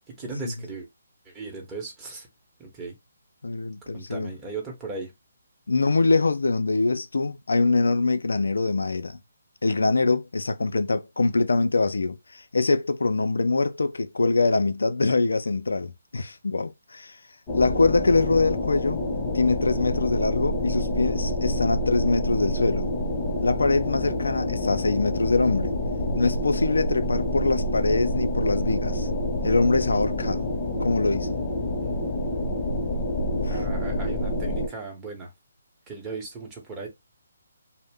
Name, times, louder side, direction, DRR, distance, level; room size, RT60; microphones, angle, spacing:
voice 1, 0.1-0.9 1.3-2.3 2.6-3.0 3.9-5.1 33.5-35.3 35.9-36.9, right 4 dB, 15° right, 0.9 m, -37 dB
voice 2, 3.4-4.3 5.7-9.2 9.6-17.2 17.5-19.0 19.3-22.9 23.4-25.7 26.2-29.1 29.4-30.5 30.8-31.4 33.3-33.7, left 3 dB, 80° left, 0.4 m, -24 dB
sound 1, 17.5-34.7, left 1 dB, 25° left, 0.7 m, -28 dB
sound 2, 25.1-34.6, right 1 dB, 55° right, 0.7 m, -40 dB
2.5 x 2.1 x 3.3 m
hypercardioid pair, 150°, 0 cm